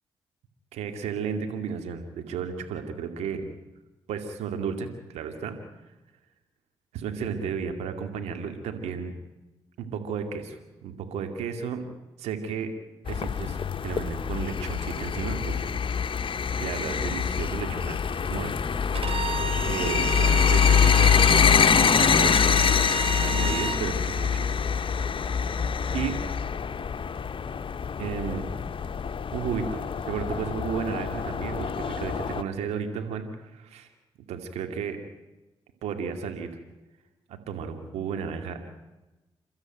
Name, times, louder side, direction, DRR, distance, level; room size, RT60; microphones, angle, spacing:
voice 1, 0.7-3.4 4.1-5.6 6.9-9.1 9.8-11.8 12.2-12.7 13.1-15.8 16.6-18.0 18.3-18.8 19.6-21.4 21.8-22.3 23.2-24.5 25.0-25.1 25.9-26.2 28.0-28.4 29.3-33.9 34.3-35.0 35.8-36.5 37.3-38.7, right 6 dB, 85° right, 6 dB, 2.4 m, -33 dB
sound 1, 13.1-32.4, left 7 dB, 50° left, 1.1 m, -25 dB
Bowed string instrument, 18.9-23.8, right 8 dB, 60° right, 2.1 m, -33 dB
29.0 x 13.0 x 9.1 m, 1.1 s
supercardioid pair, 45°, 11 cm